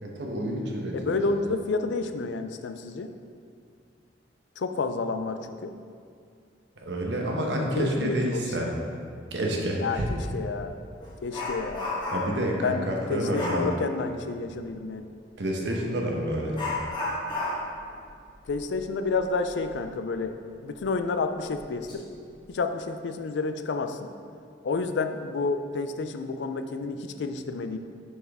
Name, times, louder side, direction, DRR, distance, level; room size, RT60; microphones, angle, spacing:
voice 1, 0.0-1.2 6.8-8.7 9.3-10.1 12.1-13.7 15.4-16.6, right 1 dB, 75° right, 0 dB, 1.0 m, -28 dB
voice 2, 0.9-3.1 4.6-5.7 7.6-8.6 9.8-10.0 10.3-10.7 11.2-12.0 12.6-15.1 18.5-20.4 20.6-22.1 22.5-24.1 24.6-27.8, left 4 dB, 80° left, 8 dB, 0.4 m, -30 dB
Dog, 10.7-12.5 13.3-13.7 15.7-15.8 16.5-19.8 20.1-20.2 20.8-20.9 21.5-21.9 22.3-22.6, left 2 dB, 25° left, 1.3 m, -33 dB
6.3 x 5.8 x 3.5 m, 2.3 s
head